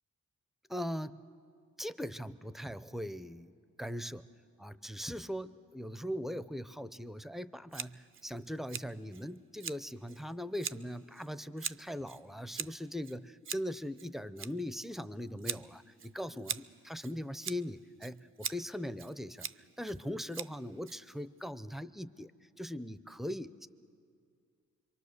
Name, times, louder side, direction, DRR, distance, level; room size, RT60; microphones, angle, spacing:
voice 1, 0.7-1.2 1.8-4.3 4.6-19.5 19.8-22.3 22.6-23.7, equal, ahead, 14 dB, 0.6 m, -40 dB
Scissors, 7.7-21.4, right 7 dB, 45° right, 0.5 m, -44 dB
26.5 x 23.0 x 6.6 m, 2.2 s
cardioid pair, 70°, 31 cm